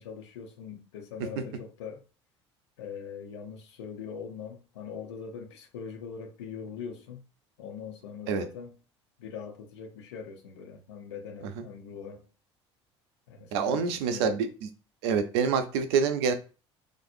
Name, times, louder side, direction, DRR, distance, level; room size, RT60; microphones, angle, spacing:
voice 1, 0.0-2.0 2.8-7.2 7.6-8.7 9.2-12.3 13.3-14.3, left 6 dB, 70° left, 1.0 m, -42 dB
voice 2, 13.5-14.7 15.0-16.3, right 6 dB, 65° right, 0.7 m, -27 dB
3.9 x 3.4 x 2.6 m
figure-of-eight pair, 65°, 15 cm